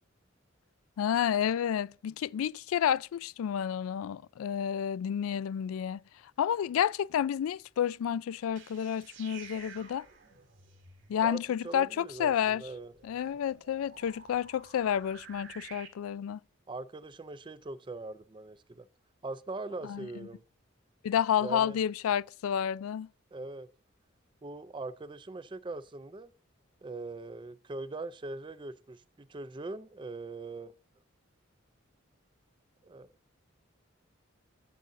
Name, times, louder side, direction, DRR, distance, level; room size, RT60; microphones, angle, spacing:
voice 1, 1.0-6.0 6.4-10.1 11.1-12.6 13.0-16.4 19.8-20.1 21.0-23.1, left 9 dB, 90° left, 0.3 m, -30 dB
sound 1, 8.4-15.9, right 6 dB, 60° right, 2.1 m, -52 dB
voice 2, 11.6-12.9 16.7-18.8 19.2-20.4 21.4-21.8 23.3-23.7 24.4-26.3 26.8-30.7 32.8-33.1, right 3 dB, 25° right, 0.4 m, -41 dB
12.0 x 7.6 x 2.6 m
head